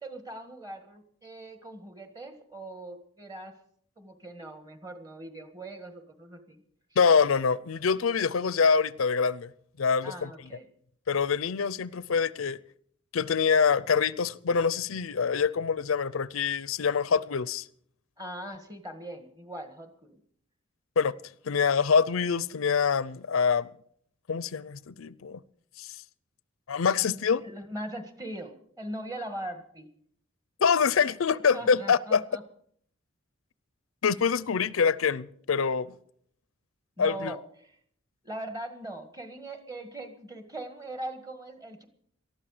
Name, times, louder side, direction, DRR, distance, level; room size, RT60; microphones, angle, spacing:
voice 1, 0.0-3.5 4.0-6.6 10.0-10.7 18.2-20.2 27.4-29.9 31.3-32.4 37.0-37.7 38.2-41.9, right 1 dB, 20° right, 1.7 m, -40 dB
voice 2, 7.0-9.5 9.8-10.3 11.1-12.6 13.1-17.6 21.0-21.1 21.5-23.7 24.3-25.4 25.8-25.9 26.7-27.4 30.6-32.2 34.0-35.9 37.0-37.3, left 6 dB, 90° left, 0.5 m, -25 dB
19.0 x 13.0 x 5.0 m
head